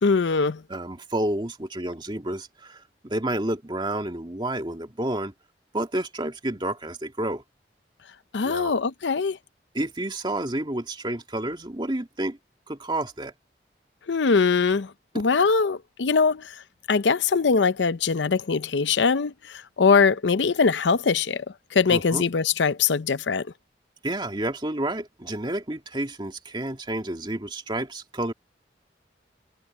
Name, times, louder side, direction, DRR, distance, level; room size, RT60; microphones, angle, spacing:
voice 1, 0.0-0.6 8.3-9.4 14.1-16.5 16.9-21.5 21.7-23.5, left 5 dB, 85° left, 0.6 m, -22 dB
voice 2, 0.7-5.3 5.7-7.4 8.4-8.7 9.7-12.4 12.7-13.3 21.9-22.2 24.0-28.3, right 1 dB, 25° right, 2.3 m, -30 dB
head